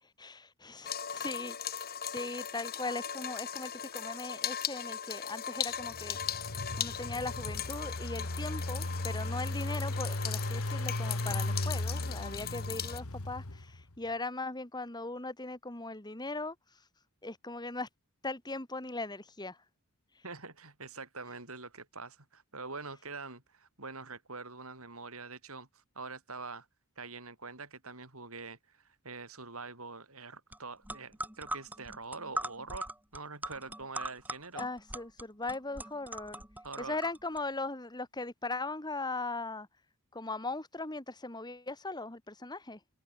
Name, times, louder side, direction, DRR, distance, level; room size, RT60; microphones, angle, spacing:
voice 1, 0.2-6.5 6.8-16.6 17.2-17.9 18.2-19.6 34.6-36.4 36.8-39.7 40.1-42.8, left 2 dB, 20° left, 2.1 m, -39 dB
sound 1, 0.8-13.0, left 9 dB, 45° left, 4.7 m, -39 dB
Engine, 5.8-13.8, left 2 dB, 75° left, 1.9 m, -36 dB
voice 2, 20.2-26.7 27.0-34.7 36.6-37.0, right 4 dB, 70° right, 7.0 m, -45 dB
sound 2, 30.5-30.6 30.8-37.4, right 1 dB, 10° right, 7.0 m, -41 dB
head